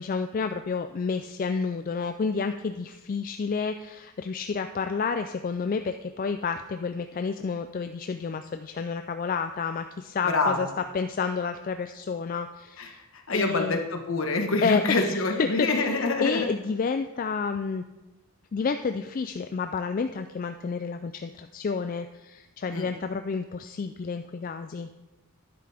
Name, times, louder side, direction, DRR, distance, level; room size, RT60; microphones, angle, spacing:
voice 1, 0.0-10.7 10.9-13.0 13.3-13.8 14.6-17.8 18.5-24.9, left 5 dB, 40° left, 8 dB, 0.3 m, -30 dB
voice 2, 10.2-10.7 12.8-16.5 22.7-22.9, left 3 dB, 65° left, 4 dB, 1.3 m, -26 dB
11.5 x 10.0 x 3.4 m, 1.1 s
head